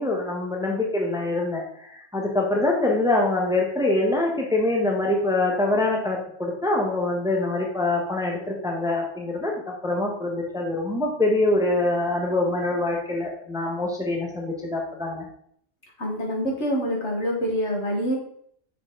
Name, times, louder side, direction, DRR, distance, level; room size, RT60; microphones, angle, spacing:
voice 1, 0.0-15.3, left 2 dB, 5° right, 0 dB, 1.0 m, -24 dB
voice 2, 16.0-18.2, equal, 65° left, -1 dB, 1.9 m, -26 dB
6.5 x 4.5 x 3.7 m, 0.65 s
omnidirectional pair, 1.3 m